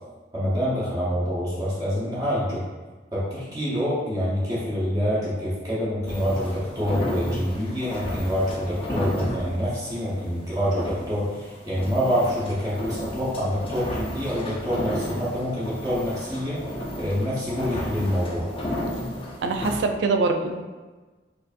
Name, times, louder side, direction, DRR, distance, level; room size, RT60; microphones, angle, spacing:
voice 1, 0.3-2.6 3.1-16.6 16.9-18.5, equal, 20° right, -9 dB, 0.8 m, -26 dB
sound 1, 6.1-19.8, equal, 30° left, 0.5 m, -33 dB
voice 2, 19.4-20.6, right 3 dB, 70° right, 5 dB, 0.3 m, -23 dB
4.6 x 2.6 x 2.5 m, 1.3 s
head